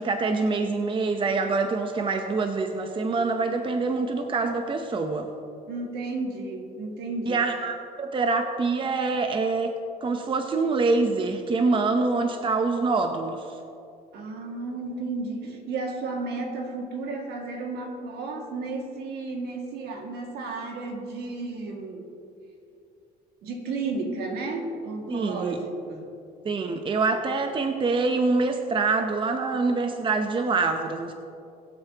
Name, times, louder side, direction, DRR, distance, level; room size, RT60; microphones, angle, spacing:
voice 1, 0.0-5.3 7.3-9.7 10.0-13.6 25.1-25.6 26.4-31.1, right 3 dB, 30° right, 5 dB, 0.8 m, -25 dB
voice 2, 5.7-7.4 14.1-22.1 23.4-26.1, right 3 dB, 75° right, 1 dB, 2.2 m, -33 dB
23.0 x 8.0 x 3.0 m, 2.7 s
cardioid pair, 110°, 17 cm